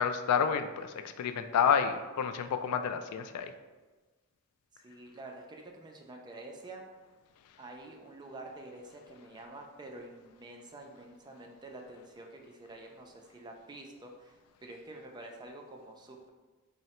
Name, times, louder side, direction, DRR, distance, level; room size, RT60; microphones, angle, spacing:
voice 1, 0.0-3.5, left 7 dB, 85° left, 11 dB, 0.3 m, -29 dB
voice 2, 4.8-6.8 7.6-16.3, right 2 dB, 20° right, 1 dB, 0.4 m, -48 dB
3.7 x 2.1 x 4.1 m, 1.3 s
head